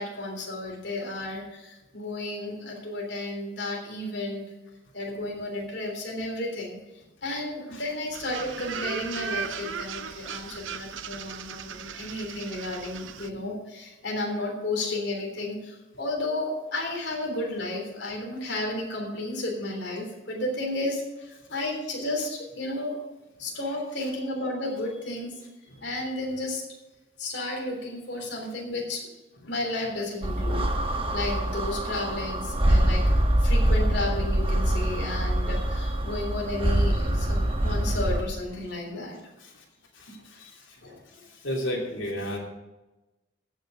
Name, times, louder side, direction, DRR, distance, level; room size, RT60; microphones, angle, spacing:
voice 1, 0.0-4.5 4.9-6.8 7.2-23.0 23.4-25.4 25.8-26.6 27.2-29.1 29.5-30.7 31.1-33.0 33.4-39.2 40.4-40.5 40.8-41.0, left 2 dB, 60° left, 0 dB, 3.5 m, -32 dB
sound 1, 8.1-13.3, right 7 dB, 80° right, 0.7 m, -37 dB
sound 2, 30.2-38.2, right 1 dB, 30° right, 1.0 m, -24 dB
voice 2, 39.9-40.8 41.3-42.4, equal, 85° left, -2 dB, 3.0 m, -33 dB
15.0 x 6.5 x 6.3 m, 1.0 s
head